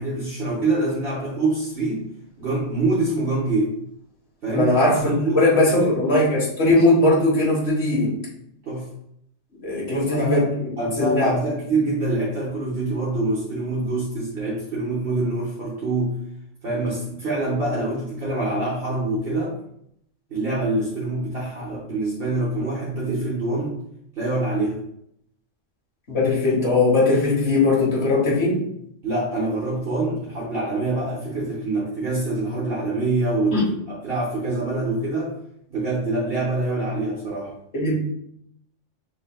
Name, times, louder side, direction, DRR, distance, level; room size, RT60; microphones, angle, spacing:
voice 1, 0.0-2.0 2.4-3.7 4.4-4.8 5.1-5.9 8.6-8.8 9.9-16.1 16.6-19.5 20.3-23.8 24.1-24.8 29.0-33.6 33.9-35.3 35.7-37.5, right 2 dB, 50° right, -7 dB, 1.2 m, -25 dB
voice 2, 4.5-8.1 9.6-10.5 11.0-11.3 26.1-28.6 33.5-33.6 37.7-38.0, left 2 dB, 55° left, -5 dB, 1.7 m, -19 dB
6.9 x 3.1 x 2.3 m, 0.74 s
omnidirectional pair, 1.3 m